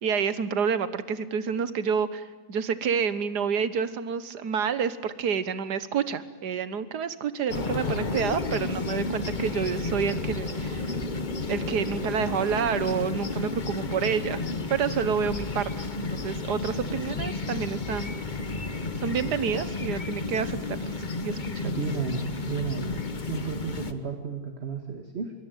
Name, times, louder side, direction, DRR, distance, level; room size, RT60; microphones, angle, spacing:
voice 1, 0.0-10.9 11.5-14.4 14.7-15.7 16.0-18.1 19.0-20.6 21.2-21.7, right 7 dB, 80° right, 14 dB, 1.8 m, -28 dB
sound 1, 7.5-23.9, left 3 dB, 30° left, 1.3 m, -32 dB
voice 2, 21.6-23.0 23.3-25.3, right 5 dB, 40° right, 6 dB, 2.1 m, -33 dB
25.0 x 23.0 x 9.3 m, 1.2 s
omnidirectional pair, 1.7 m